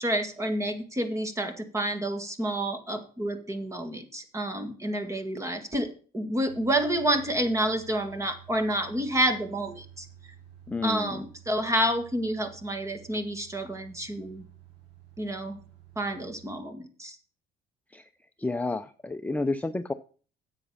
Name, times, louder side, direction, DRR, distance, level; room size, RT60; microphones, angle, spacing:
voice 1, 0.0-10.1 10.8-14.4 15.2-15.6 16.0-17.2, right 1 dB, 15° right, 8 dB, 1.9 m, -29 dB
sound 1, 6.5-16.6, right 9 dB, 90° right, 5.7 m, -52 dB
voice 2, 10.7-11.2 17.9-18.1 18.4-19.9, left 3 dB, 10° left, 8 dB, 0.6 m, -30 dB
9.9 x 8.0 x 5.6 m, 0.40 s
cardioid pair, 110°, 17 cm